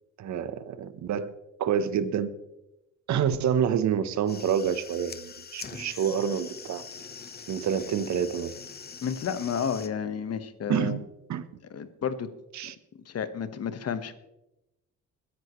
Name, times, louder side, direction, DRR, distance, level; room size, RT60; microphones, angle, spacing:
voice 1, 0.2-1.3 1.6-2.3 3.1-6.8 7.5-8.5 10.7-11.0 11.3-11.5 12.5-12.7, right 8 dB, 65° right, 12 dB, 1.0 m, -27 dB
sound 1, 4.1-9.9, left 5 dB, 30° left, 1.0 m, -43 dB
voice 2, 9.0-11.0 11.7-12.3 12.6-12.7 13.0-14.1, left 7 dB, 55° left, 11 dB, 1.3 m, -31 dB
22.0 x 10.5 x 3.1 m, 0.94 s
cardioid pair, 90°, 30 cm